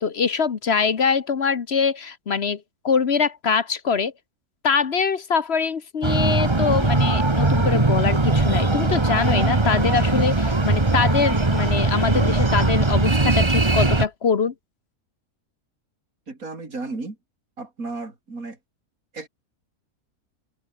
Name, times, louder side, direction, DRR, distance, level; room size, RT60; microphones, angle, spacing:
voice 1, 0.0-4.1 4.6-14.5, left 6 dB, 50° left, 1.2 m, -23 dB
Breathing, 6.0-14.1, right 2 dB, 20° right, 1.6 m, -20 dB
voice 2, 16.3-17.2 17.6-18.6 19.1-19.3, right 3 dB, 70° right, 4.6 m, -33 dB
omnidirectional pair, 1.5 m